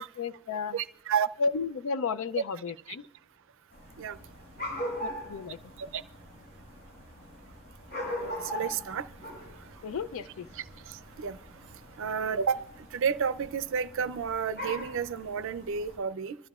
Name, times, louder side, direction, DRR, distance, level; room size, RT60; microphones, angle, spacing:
voice 1, 0.2-0.8 1.4-3.0 5.0-5.6 9.8-10.5, left 5 dB, 65° left, 0.4 m, -32 dB
voice 2, 0.7-1.3 2.4-2.5 2.9-3.0 4.0-4.2 5.8-6.0 8.1-9.8 10.3-11.4 12.0-16.4, right 6 dB, 65° right, 0.5 m, -32 dB
sound 1, 3.7-16.0, left 1 dB, 50° left, 5.5 m, -41 dB
24.5 x 13.0 x 2.4 m
head